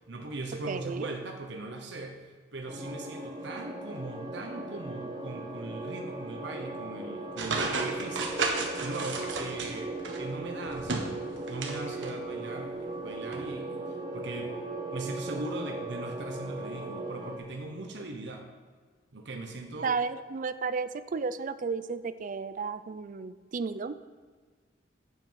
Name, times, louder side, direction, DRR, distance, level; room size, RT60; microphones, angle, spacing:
voice 1, 0.0-8.5 8.8-9.9 10.2-11.2 11.5-14.5 14.9-18.5 19.1-19.9, right 2 dB, 70° right, 2 dB, 1.0 m, -39 dB
voice 2, 0.7-1.1 19.8-24.1, right 4 dB, 45° right, 13 dB, 0.4 m, -33 dB
sound 1, 2.7-17.4, right 2 dB, 25° right, 1.1 m, -38 dB
sound 2, 7.4-10.2 10.6-11.8 12.0-12.1 13.3-13.4, right 3 dB, 90° right, 1.3 m, -32 dB
7.7 x 7.6 x 5.7 m, 1.5 s
head